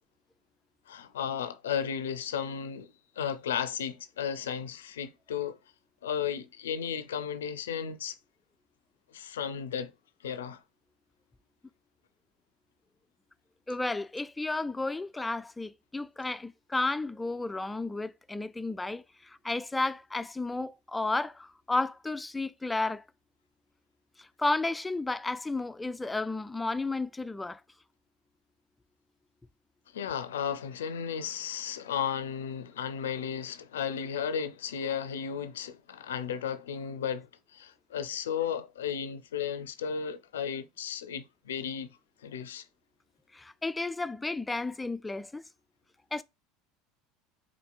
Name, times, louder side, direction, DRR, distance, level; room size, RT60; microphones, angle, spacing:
voice 1, 0.9-5.6 6.0-8.2 9.1-9.9 10.2-10.6 29.9-41.9 42.2-42.7, left 8 dB, 80° left, 0.4 m, -34 dB
voice 2, 13.7-23.0 24.2-27.6 43.3-45.4 46.1-46.2, left 2 dB, 10° left, 0.3 m, -32 dB
4.3 x 4.2 x 2.3 m
hypercardioid pair, 75°, 0 cm